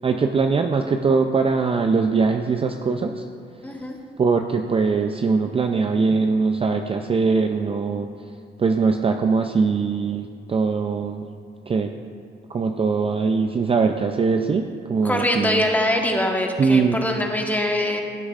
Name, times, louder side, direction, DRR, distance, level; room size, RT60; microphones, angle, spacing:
voice 1, 0.0-3.2 4.2-8.1 8.6-11.2 11.7-11.9 12.5-15.6 16.6-17.0, right 4 dB, 30° right, 5 dB, 0.5 m, -21 dB
voice 2, 3.6-4.0 15.0-18.0, left 1 dB, 10° left, 1 dB, 1.3 m, -23 dB
16.5 x 8.2 x 2.5 m, 2.2 s
cardioid pair, 90°, 20 cm